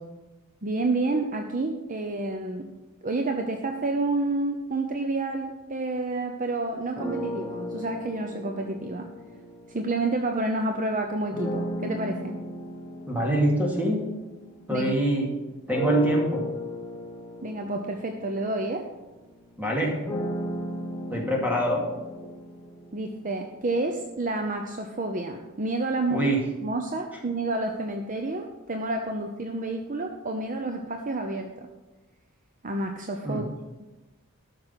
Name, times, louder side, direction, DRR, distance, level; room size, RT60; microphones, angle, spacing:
voice 1, 0.6-2.7 3.0-9.1 9.7-12.4 14.7-14.9 17.4-18.9 22.9-26.3 26.6-31.7 32.6-33.4, right 2 dB, 35° right, 4 dB, 0.7 m, -29 dB
sound 1, 7.0-10.5 11.3-15.1 15.7-23.6, equal, 15° left, 1.2 m, -36 dB
voice 2, 13.1-14.0 14.7-15.3 15.7-16.4 19.6-20.0 21.1-21.8 26.1-26.4 33.2-33.4, right 1 dB, 10° right, -1 dB, 2.4 m, -24 dB
12.5 x 6.5 x 5.8 m, 1.1 s
head